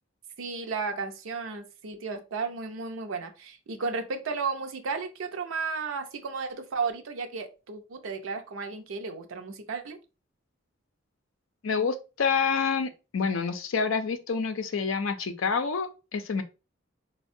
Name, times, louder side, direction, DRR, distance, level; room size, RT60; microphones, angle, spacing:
voice 1, 0.4-10.0, right 4 dB, 85° right, 0.5 m, -34 dB
voice 2, 11.6-16.4, left 5 dB, 75° left, 0.5 m, -28 dB
4.2 x 2.1 x 2.6 m
head